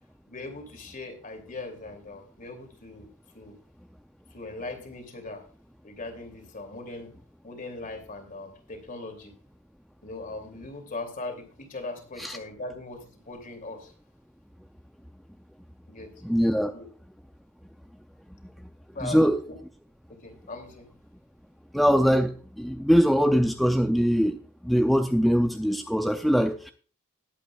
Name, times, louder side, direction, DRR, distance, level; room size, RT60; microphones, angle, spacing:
voice 1, 0.3-3.1 3.3-3.6 4.3-5.4 5.8-7.1 7.4-9.3 10.0-13.9 15.9-16.1 16.7-16.9 18.9-19.6 20.1-20.9, left 2 dB, 40° left, 2.8 m, -39 dB
voice 2, 16.2-16.7 19.0-19.4 21.7-24.4 24.6-26.7, equal, ahead, 0.5 m, -22 dB
20.0 x 8.4 x 2.4 m
head